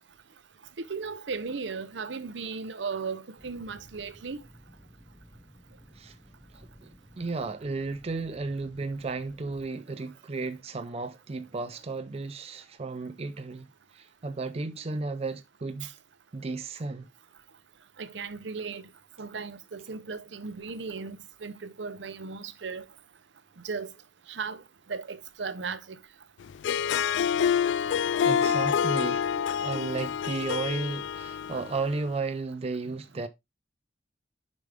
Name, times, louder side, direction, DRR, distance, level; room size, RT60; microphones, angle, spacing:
voice 1, 0.9-4.4 15.8-15.9 18.0-18.8 19.2-22.8 23.6-23.9 24.3-24.6 24.9-25.8 28.3-28.5 29.7-30.0, right 5 dB, 70° right, 0.7 m, -36 dB
sound 1, 3.4-9.7, equal, ahead, 0.9 m, -55 dB
voice 2, 6.5-15.9 16.3-17.1 28.2-33.3, right 3 dB, 35° right, 0.5 m, -34 dB
Harp, 26.5-32.0, left 8 dB, 70° left, 0.3 m, -27 dB
6.8 x 5.2 x 3.4 m
head